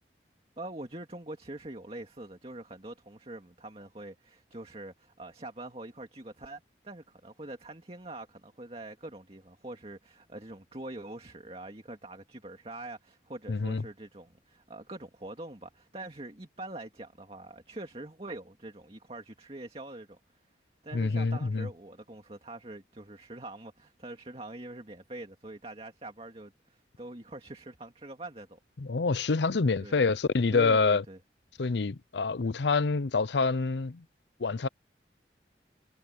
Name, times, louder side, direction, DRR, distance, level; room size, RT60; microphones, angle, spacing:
voice 1, 0.6-20.2 20.8-28.6 29.8-30.0 30.5-31.2, right 2 dB, 35° right, 2.2 m, -44 dB
voice 2, 13.5-13.8 20.9-21.7 28.8-31.0 31.6-34.0 34.4-34.7, left 4 dB, 75° left, 0.6 m, -27 dB
head